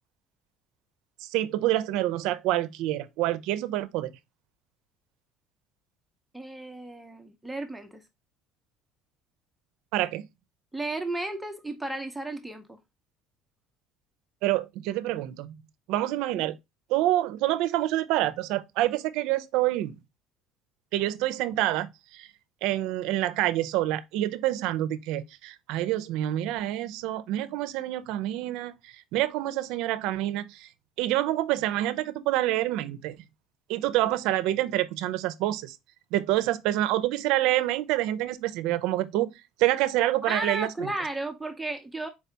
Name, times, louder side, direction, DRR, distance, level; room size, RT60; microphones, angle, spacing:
voice 1, 1.2-4.1 9.9-10.3 14.4-15.6 15.9-16.6 16.9-20.0 20.9-22.3 22.6-30.7 31.0-33.2 33.7-35.8 36.1-39.3 39.6-40.9, right 14 dB, 75° right, 0.5 m, -27 dB
voice 2, 6.3-8.0 10.7-12.8 40.3-42.1, right 2 dB, 5° right, 0.6 m, -34 dB
4.4 x 2.8 x 3.3 m
cardioid pair, 130°, 0 cm